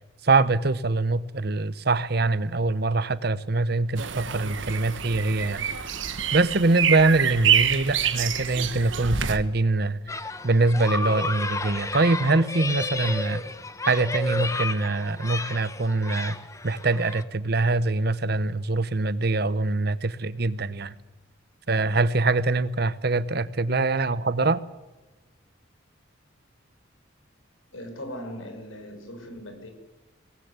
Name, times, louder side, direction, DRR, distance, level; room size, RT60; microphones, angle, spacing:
voice 1, 0.2-5.6 6.3-10.0 10.4-13.4 13.9-16.4 16.6-21.0 21.7-24.6, right 3 dB, 50° right, 0.9 m, -24 dB
sound 1, 4.0-9.4, right 8 dB, 70° right, 1.4 m, -26 dB
sound 2, 10.1-17.2, left 3 dB, 15° left, 1.1 m, -32 dB
voice 2, 27.7-29.7, equal, 85° left, 5.8 m, -39 dB
23.5 x 19.0 x 8.2 m
head